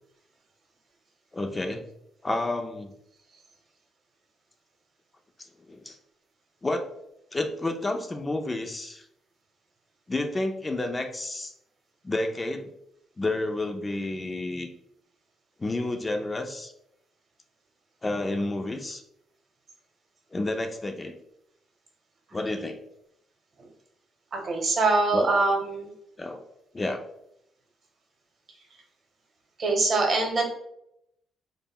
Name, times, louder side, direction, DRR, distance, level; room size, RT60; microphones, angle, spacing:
voice 1, 1.3-1.8 2.2-2.9 5.7-6.0 6.6-6.8 7.3-9.1 10.1-11.5 12.0-12.7 13.2-14.7 15.6-16.7 18.0-19.0 20.3-21.2 22.3-22.8 25.1-25.3 26.2-26.4 26.7-27.0, left 2 dB, 25° left, 4 dB, 0.3 m, -30 dB
voice 2, 24.3-25.9 29.6-30.4, right 3 dB, 50° right, 2 dB, 0.7 m, -23 dB
2.1 x 2.0 x 3.6 m, 0.78 s
cardioid pair, 90°, 0 cm